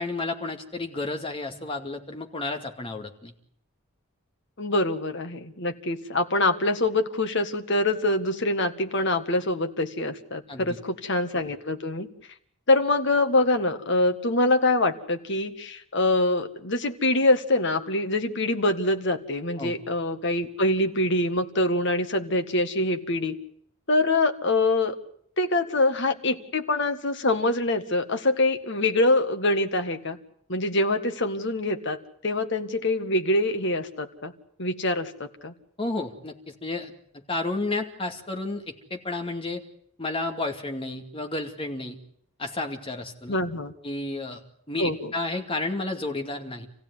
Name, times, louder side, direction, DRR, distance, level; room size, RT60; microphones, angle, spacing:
voice 1, 0.0-3.3 10.5-10.8 19.6-19.7 35.8-36.9 37.3-39.6 40.0-42.0 42.4-43.3 43.8-44.4 44.7-46.7, left 2 dB, 25° left, 4 dB, 2.4 m, -31 dB
voice 2, 4.6-12.1 12.7-23.3 23.9-24.9 25.4-30.2 30.5-34.3 34.6-35.5 43.3-43.7 44.8-45.1, left 2 dB, 55° left, 7 dB, 1.8 m, -24 dB
27.5 x 16.0 x 9.6 m, 0.68 s
head